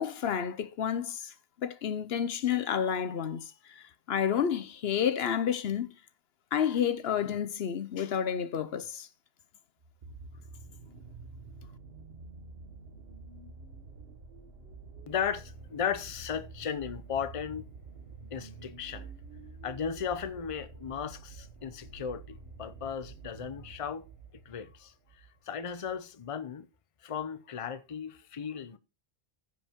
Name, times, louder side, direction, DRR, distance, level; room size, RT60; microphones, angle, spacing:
voice 1, 0.0-1.3 1.6-6.0 6.5-9.1, left 8 dB, 80° left, 1.0 m, -30 dB
sound 1, 9.8-25.4 26.2-26.3, right 4 dB, 75° right, 1.5 m, -48 dB
voice 2, 15.1-17.7 18.3-19.1 19.6-24.0 24.5-26.7 27.0-28.8, left 7 dB, 35° left, 0.7 m, -36 dB
15.0 x 5.3 x 3.6 m
omnidirectional pair, 1.0 m